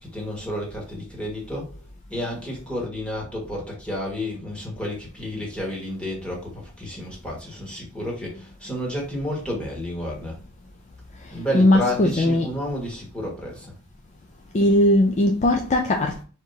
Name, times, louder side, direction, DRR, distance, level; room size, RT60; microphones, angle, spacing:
voice 1, 0.0-1.7 2.1-10.4 11.3-13.7, left 1 dB, 5° left, 1.6 m, -31 dB
voice 2, 11.2-12.5 14.5-16.2, left 1 dB, 35° left, 0.4 m, -19 dB
4.6 x 3.6 x 2.7 m
head